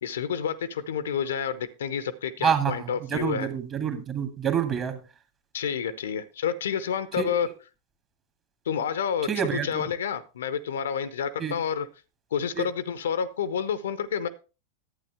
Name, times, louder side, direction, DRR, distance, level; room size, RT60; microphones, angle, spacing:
voice 1, 0.0-3.5 5.5-7.5 8.7-11.9 12.3-14.3, left 7 dB, 65° left, 15 dB, 0.7 m, -29 dB
voice 2, 2.4-5.0 7.2-7.3 9.3-9.8 11.4-11.5 12.5-12.6, right 8 dB, 30° right, 7 dB, 1.8 m, -27 dB
11.5 x 8.7 x 3.4 m, 0.32 s
figure-of-eight pair, 90°, 0 cm